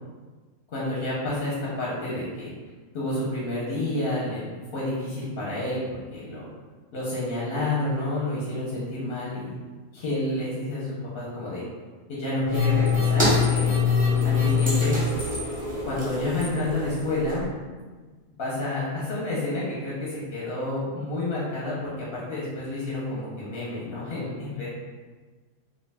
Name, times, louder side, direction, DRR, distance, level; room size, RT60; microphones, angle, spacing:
voice 1, 0.7-2.5 2.9-6.5 6.9-9.6 9.9-11.6 12.1-13.8 14.2-15.0 15.8-17.4 18.4-24.7, left 2 dB, 55° left, -7 dB, 0.8 m, -29 dB
sound 1, 12.5-17.4, left 5 dB, 10° right, 0.4 m, -24 dB
2.3 x 2.3 x 3.3 m, 1.4 s
omnidirectional pair, 1.3 m